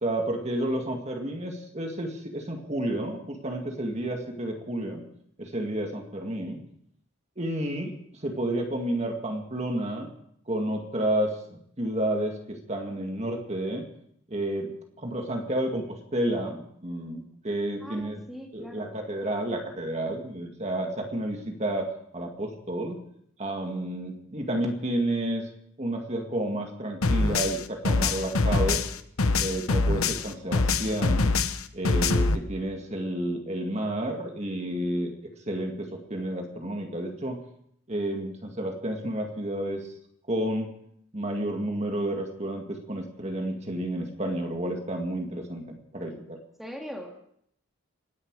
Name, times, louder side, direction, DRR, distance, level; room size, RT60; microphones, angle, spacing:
voice 1, 0.0-5.0 5.4-6.6 7.4-8.0 8.2-10.1 10.5-13.9 14.3-14.7 15.0-18.2 18.5-23.0 23.4-25.5 25.8-28.8 29.4-31.3 31.7-35.1 35.5-37.4 37.9-39.9 40.3-40.7 41.1-46.4, right 1 dB, 30° right, 3 dB, 2.0 m, -30 dB
voice 2, 17.8-19.0 46.6-47.3, equal, ahead, 1 dB, 1.9 m, -41 dB
sound 1, 27.0-30.3 30.5-32.4, left 3 dB, 75° left, 0.9 m, -24 dB
27.5 x 10.5 x 4.8 m, 0.68 s
head